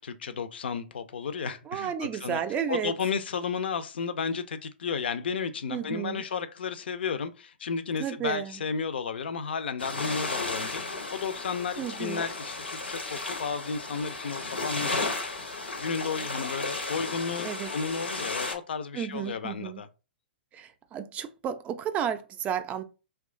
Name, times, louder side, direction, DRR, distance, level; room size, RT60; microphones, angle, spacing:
voice 1, 0.0-2.4 2.7-15.3 15.8-19.9, left 6 dB, 70° left, 0.5 m, -33 dB
voice 2, 1.7-2.9 5.7-6.2 8.0-8.6 11.8-12.2 17.4-17.7 18.9-19.8 20.5-22.8, right 8 dB, 25° right, 0.4 m, -32 dB
sound 1, 9.8-18.5, left 3 dB, 90° left, 0.8 m, -34 dB
3.0 x 2.3 x 3.6 m
figure-of-eight pair, 120°, 6 cm